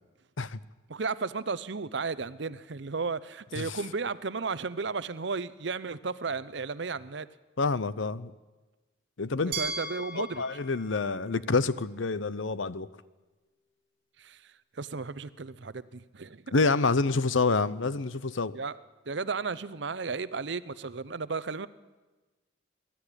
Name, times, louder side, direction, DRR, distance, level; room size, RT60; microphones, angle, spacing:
voice 1, 0.9-7.3 9.6-10.4 14.2-14.4 14.8-16.5 18.5-18.8 19.1-21.7, right 4 dB, 65° right, 16 dB, 0.7 m, -34 dB
voice 2, 7.6-8.3 9.2-9.6 10.2-12.9 16.5-18.6, left 3 dB, 80° left, 17 dB, 0.8 m, -27 dB
Glass, 9.5-12.4, right 3 dB, 45° right, 2.9 m, -39 dB
22.5 x 13.0 x 9.9 m, 1.2 s
head